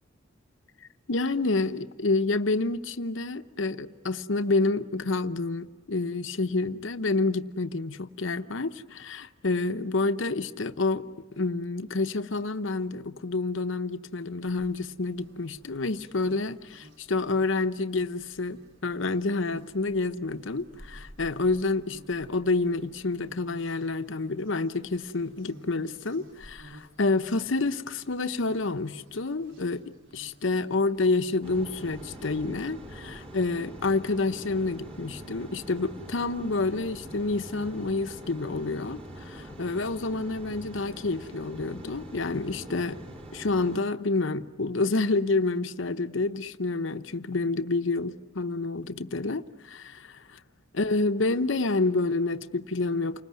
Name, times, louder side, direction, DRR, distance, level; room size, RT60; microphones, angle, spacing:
voice 1, 1.1-11.0 11.3-29.8 30.1-43.0 43.3-50.4 50.7-53.2, left 3 dB, 70° left, 10 dB, 0.9 m, -28 dB
sound 1, 14.4-32.3, right 1 dB, 65° right, 4.0 m, -54 dB
sound 2, 31.4-43.8, right 1 dB, 30° right, 4.8 m, -44 dB
29.5 x 20.0 x 9.6 m, 1.3 s
head